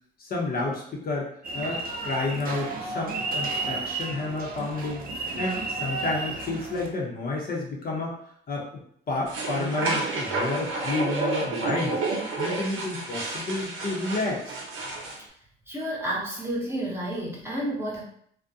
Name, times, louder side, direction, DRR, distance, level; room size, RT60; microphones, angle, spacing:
voice 1, 0.2-1.3 1.5-5.0 5.4-8.2 8.5-8.6 9.1-12.0 12.4-14.6, left 3 dB, 50° left, -2 dB, 0.7 m, -30 dB
sound 1, 1.4-6.9, right 3 dB, 45° right, 0.5 m, -32 dB
sound 2, 9.3-15.2, right 3 dB, 85° right, 0.7 m, -30 dB
voice 2, 15.7-18.0, right 1 dB, 10° right, -4 dB, 0.8 m, -30 dB
2.4 x 2.1 x 2.7 m, 0.65 s
cardioid pair, 90°, 20 cm